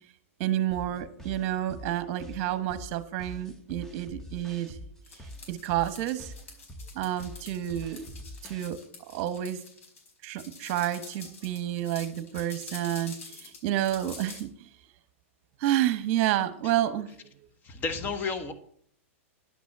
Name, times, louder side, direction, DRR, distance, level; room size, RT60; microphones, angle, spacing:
voice 1, 0.4-4.8 5.5-6.3 6.9-8.0 8.4-8.8 9.1-9.6 10.2-14.5 15.6-17.1, right 12 dB, 45° right, 12 dB, 1.2 m, -29 dB
sound 1, 0.7-8.7, equal, 5° left, 1.1 m, -45 dB
sound 2, 5.0-14.4, left 4 dB, 75° left, 4.8 m, -47 dB
voice 2, 17.6-18.5, left 4 dB, 25° left, 9 dB, 1.2 m, -32 dB
11.0 x 6.1 x 7.4 m, 0.62 s
hypercardioid pair, 135°, 7 cm